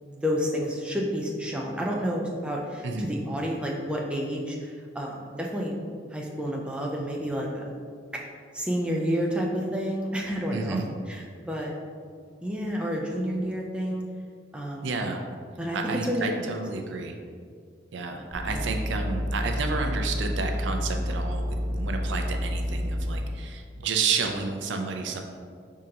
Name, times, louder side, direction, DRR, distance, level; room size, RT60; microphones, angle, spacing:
voice 1, 0.0-5.7 6.1-7.7 8.5-10.8 11.1-11.7 12.4-14.0 14.5-14.9 15.6-15.8 16.1-16.6 18.5-18.6, equal, 5° right, -2 dB, 0.4 m, -30 dB
voice 2, 10.5-10.9 14.8-15.2 15.7-17.1 17.9-25.2, right 4 dB, 75° right, 4 dB, 0.5 m, -31 dB
sound 1, 18.3-23.2, equal, 35° right, 1.1 m, -29 dB
5.0 x 3.7 x 2.8 m, 2.1 s
head